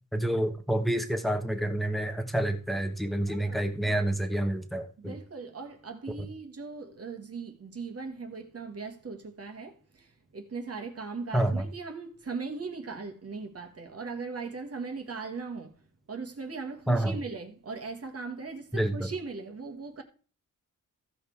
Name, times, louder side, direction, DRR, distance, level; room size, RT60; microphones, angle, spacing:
voice 1, 0.1-5.1 11.3-11.6 16.9-17.2 18.7-19.1, right 1 dB, ahead, 1.2 m, -28 dB
voice 2, 3.3-3.9 5.0-20.0, right 4 dB, 45° right, 1.6 m, -39 dB
15.0 x 5.2 x 4.6 m
wide cardioid pair, 120°, 33 cm